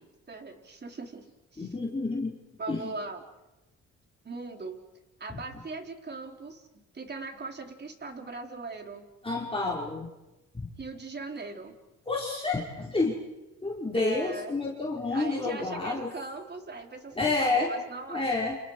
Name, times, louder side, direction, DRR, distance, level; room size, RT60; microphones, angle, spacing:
voice 1, 0.3-1.2 1.5-1.7 2.6-3.2 4.2-4.8 5.2-6.7 6.9-9.0 10.8-11.7 13.9-14.6 15.1-18.3, right 3 dB, 35° right, 4 dB, 4.0 m, -39 dB
voice 2, 1.6-2.4 2.7-2.9 9.2-10.1 10.5-10.7 12.1-13.2 13.6-16.1 17.2-17.7 18.1-18.6, left 3 dB, 20° left, -3 dB, 5.3 m, -29 dB
30.0 x 29.5 x 5.0 m, 1.0 s
cardioid pair, 90°, 30 cm